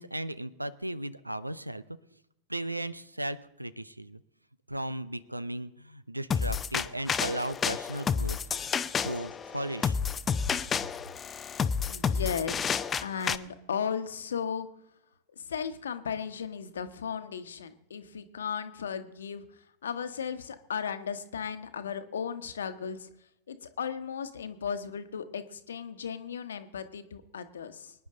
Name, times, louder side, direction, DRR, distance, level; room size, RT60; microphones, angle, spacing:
voice 1, 0.0-1.8 2.5-4.2 4.7-8.4 9.0-10.0, right 1 dB, 85° right, 18 dB, 0.6 m, -36 dB
sound 1, 6.3-13.4, left 6 dB, 20° left, 0.6 m, -30 dB
voice 2, 11.9-14.7 15.4-19.4 19.8-23.1 23.5-27.9, left 7 dB, 65° left, 10 dB, 1.2 m, -36 dB
24.5 x 10.0 x 3.8 m, 0.88 s
figure-of-eight pair, 90°, 0 cm